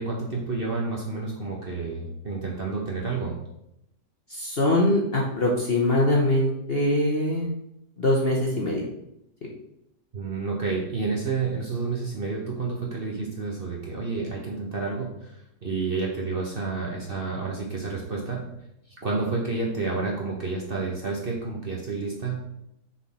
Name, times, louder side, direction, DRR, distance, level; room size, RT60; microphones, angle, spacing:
voice 1, 0.0-3.4 10.1-18.4 19.0-22.4, right 4 dB, 40° right, -2 dB, 0.9 m, -30 dB
voice 2, 4.3-7.5 8.0-8.8, left 1 dB, 40° left, -2 dB, 0.9 m, -23 dB
6.4 x 3.9 x 4.1 m, 0.82 s
omnidirectional pair, 1.9 m